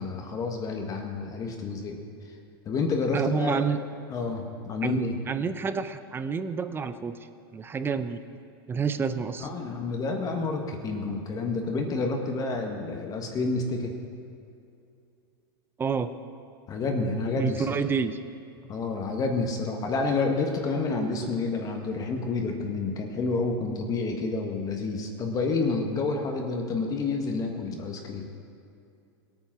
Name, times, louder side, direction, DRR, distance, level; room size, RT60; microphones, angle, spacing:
voice 1, 0.0-2.0 2.6-3.6 4.1-5.2 9.4-13.9 16.7-17.7 18.6-28.3, left 3 dB, 30° left, 2 dB, 1.5 m, -29 dB
voice 2, 3.1-3.8 4.8-7.2 7.5-8.4 8.7-9.5 15.8-16.1 17.4-18.2, right 5 dB, 15° right, 12 dB, 0.6 m, -29 dB
18.0 x 9.0 x 6.1 m, 2.6 s
supercardioid pair, 125°, 13 cm